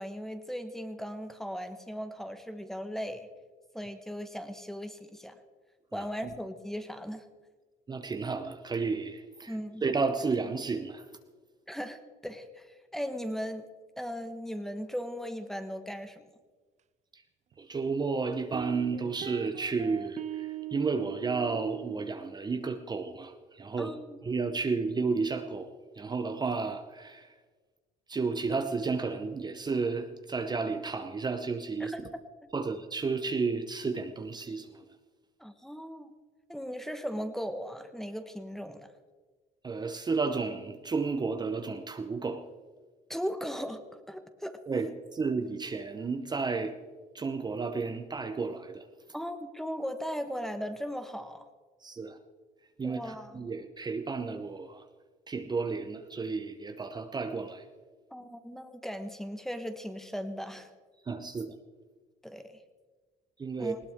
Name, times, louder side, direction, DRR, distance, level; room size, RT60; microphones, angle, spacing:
voice 1, 0.0-3.3 3.7-5.4 5.9-7.2 9.5-9.8 11.7-13.6 14.0-16.3 23.8-24.2 31.8-32.1 32.4-32.5 35.4-36.1 36.5-38.9 43.1-44.6 49.1-51.5 52.8-53.4 58.1-60.7 62.2-62.6 63.6-63.8, equal, ahead, 1.2 m, -38 dB
voice 2, 7.9-9.5 9.8-11.0 17.6-23.9 24.2-25.7 26.0-27.3 28.1-31.9 32.5-34.7 39.6-42.5 44.7-46.8 47.1-48.8 51.8-52.2 52.8-54.8 55.3-57.6 61.1-61.5 63.4-63.7, right 4 dB, 25° right, 0.9 m, -32 dB
sound 1, 17.5-17.6 18.5-22.0, right 13 dB, 40° right, 0.5 m, -39 dB
19.5 x 17.5 x 3.7 m
cardioid pair, 110°, 17 cm